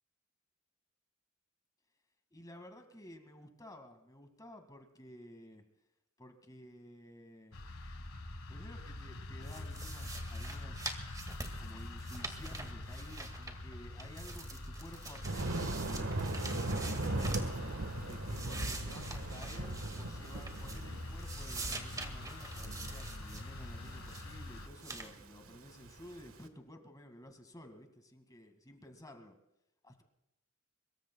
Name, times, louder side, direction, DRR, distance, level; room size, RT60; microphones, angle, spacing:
voice 1, 2.3-5.6 6.2-7.6 8.5-11.0 11.6-16.3 17.7-29.4 29.8-30.0, left 1 dB, 20° left, 6 dB, 2.0 m, -53 dB
sound 1, 7.5-24.7, left 2 dB, 80° left, 1.7 m, -45 dB
sound 2, 9.4-13.7 14.0-17.6 18.0-20.9 21.2-23.4 23.8-24.3 24.8-25.1, right 3 dB, 15° right, 1.9 m, -45 dB
Thunder, 15.2-26.3, right 1 dB, 75° right, 1.5 m, -39 dB
24.0 x 22.5 x 2.3 m, 0.88 s
head